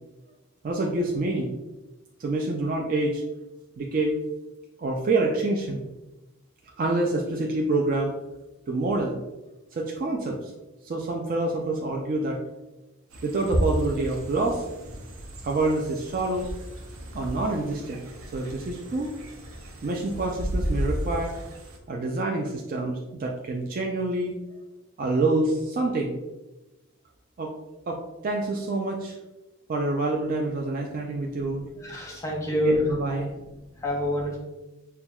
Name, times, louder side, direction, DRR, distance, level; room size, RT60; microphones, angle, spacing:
voice 1, 0.6-1.5 2.2-3.2 3.8-4.2 4.8-5.9 6.8-8.2 8.7-9.2 9.7-10.5 10.8-12.4 13.2-14.6 15.4-16.5 17.1-18.1 18.3-19.1 19.8-21.3 21.9-24.3 25.0-26.1 27.4-27.5 27.9-29.1 29.7-31.6 32.6-33.3, right 2 dB, 40° right, 0 dB, 0.3 m, -27 dB
sound 1, 13.1-21.8, equal, 75° right, 0.6 m, -33 dB
voice 2, 31.8-32.7 33.1-33.2 33.8-34.4, left 1 dB, 15° left, -2 dB, 0.7 m, -27 dB
5.7 x 2.2 x 2.2 m, 1.0 s
head